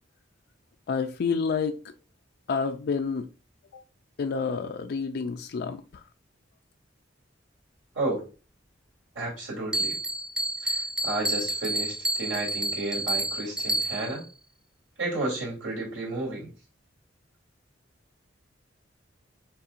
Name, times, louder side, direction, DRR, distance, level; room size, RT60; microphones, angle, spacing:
voice 1, 0.9-1.9 2.5-3.3 4.2-6.0, left 5 dB, 55° left, 0.4 m, -29 dB
voice 2, 9.1-10.0 10.6-14.2 15.0-16.5, right 2 dB, 85° right, 2.7 m, -32 dB
Bell, 9.7-14.2, right 1 dB, 5° right, 0.5 m, -29 dB
5.5 x 3.7 x 2.5 m
head